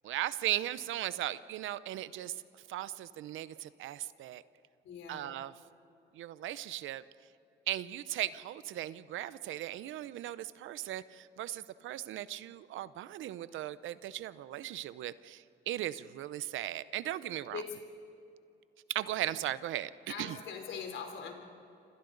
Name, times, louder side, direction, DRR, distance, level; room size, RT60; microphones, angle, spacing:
voice 1, 0.0-2.3 2.7-4.4 5.1-5.5 6.1-7.0 7.7-17.6 18.9-19.9 20.2-20.4, right 13 dB, 80° right, 16 dB, 0.7 m, -37 dB
voice 2, 4.8-5.4 17.5-17.8 20.1-21.3, left 6 dB, 70° left, 3 dB, 3.8 m, -42 dB
28.5 x 26.0 x 4.0 m, 2.8 s
cardioid pair, 90°, 20 cm